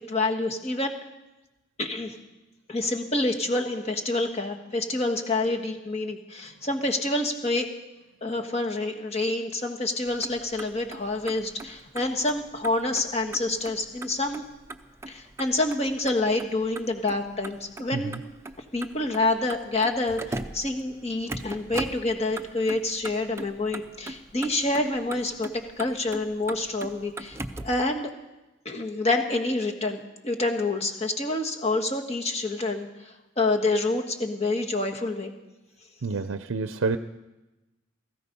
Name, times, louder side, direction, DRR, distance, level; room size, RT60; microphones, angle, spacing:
voice 1, 0.1-1.0 1.8-2.1 2.7-7.7 8.2-14.4 15.1-18.1 18.7-25.5 25.8-27.4 27.6-28.1 28.6-32.9 33.4-35.3, left 2 dB, 30° left, 3 dB, 1.5 m, -27 dB
Motor vehicle (road), 10.1-27.8, right 2 dB, 15° right, 0.6 m, -40 dB
voice 2, 36.0-37.0, right 4 dB, 80° right, 10 dB, 0.6 m, -28 dB
17.5 x 15.5 x 5.4 m, 1.0 s
head